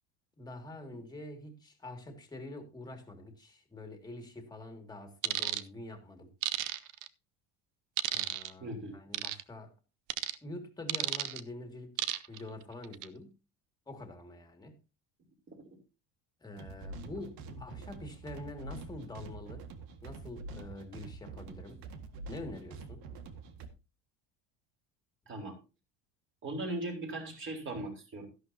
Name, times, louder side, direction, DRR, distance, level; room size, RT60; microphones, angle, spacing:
voice 1, 0.4-6.3 8.1-9.7 10.4-13.3 13.9-14.8 16.4-19.6 20.0-21.8 22.3-23.0, left 2 dB, 10° left, 2.2 m, -46 dB
sound 1, 5.2-5.6 6.4-7.1 8.0-8.5 9.1-9.4 10.1-10.4 10.9-11.4 12.0-12.4 12.8-13.1, right 15 dB, 55° right, 0.8 m, -32 dB
voice 2, 8.6-9.0 15.5-15.6 25.3-25.6 26.4-28.3, right 2 dB, 30° right, 4.3 m, -38 dB
sound 2, 16.6-23.7, right 3 dB, 75° right, 1.9 m, -46 dB
13.0 x 11.5 x 2.8 m
cardioid pair, 140°, 37 cm